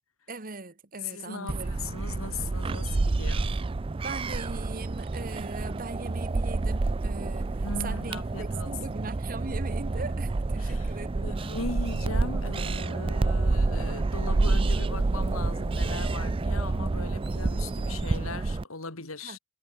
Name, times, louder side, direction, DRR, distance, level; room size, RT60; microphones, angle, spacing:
voice 1, 0.3-1.8 4.0-11.3 19.2-19.4, right 3 dB, 40° right, 1.6 m, -40 dB
voice 2, 1.0-3.6 7.6-8.8 10.6-19.4, left 3 dB, 85° left, 3.2 m, -39 dB
sound 1, 1.5-18.6, right 3 dB, 25° right, 0.4 m, -28 dB
head